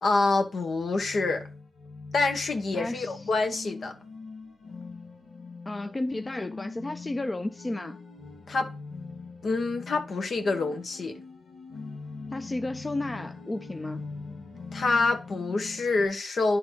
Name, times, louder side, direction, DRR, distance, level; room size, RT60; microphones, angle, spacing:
voice 1, 0.0-1.4 2.1-3.9 8.5-8.7 9.4-11.2 14.7-16.6, left 3 dB, 70° left, 1.0 m, -26 dB
sound 1, 0.7-16.1, left 4 dB, 90° left, 1.4 m, -42 dB
voice 2, 2.7-3.1 5.7-8.0 12.3-14.1, left 2 dB, 30° left, 0.5 m, -33 dB
10.0 x 3.9 x 3.0 m
cardioid pair, 45°, 0 cm